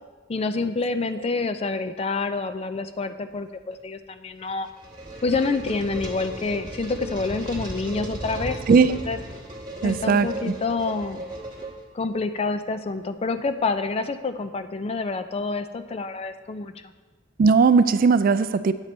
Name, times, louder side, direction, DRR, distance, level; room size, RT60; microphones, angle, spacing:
voice 1, 0.3-4.7 5.2-8.6 9.1-9.2 9.8-11.2 11.9-16.7, left 3 dB, 30° left, 10 dB, 0.4 m, -27 dB
sound 1, 4.4-12.1, right 1 dB, 25° right, 1.3 m, -36 dB
voice 2, 9.8-10.5 17.4-18.7, right 5 dB, 50° right, 13 dB, 0.3 m, -18 dB
8.9 x 6.8 x 4.2 m, 1.3 s
head